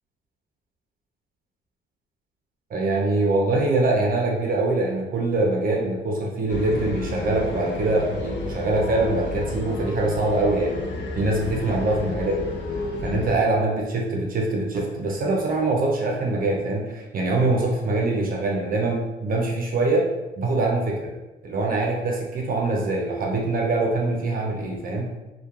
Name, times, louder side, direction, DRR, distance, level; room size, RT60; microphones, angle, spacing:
voice 1, 2.7-10.8 11.2-12.4 13.0-20.1 20.4-21.1 21.4-25.1, right 2 dB, 45° right, -1 dB, 0.5 m, -23 dB
sound 1, 6.5-13.4, left 3 dB, 60° left, 0.5 m, -31 dB
2.2 x 2.1 x 3.0 m, 1.1 s
cardioid pair, 90°, 20 cm